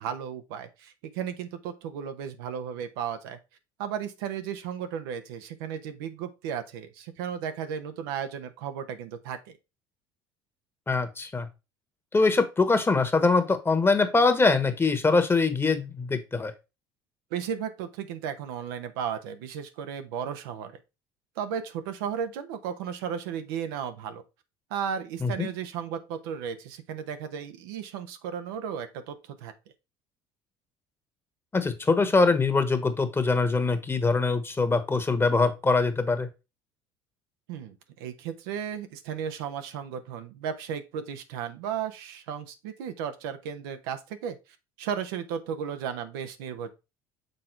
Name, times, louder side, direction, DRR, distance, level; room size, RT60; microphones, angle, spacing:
voice 1, 0.0-3.4 3.8-9.5 17.3-20.8 21.4-24.2 24.7-29.5 37.5-44.4 44.8-46.7, right 8 dB, 80° right, 0.9 m, -34 dB
voice 2, 10.9-11.5 12.1-16.5 25.2-25.5 31.5-36.3, left 3 dB, 20° left, 1.3 m, -23 dB
6.6 x 3.8 x 4.5 m
hypercardioid pair, 75°, 12 cm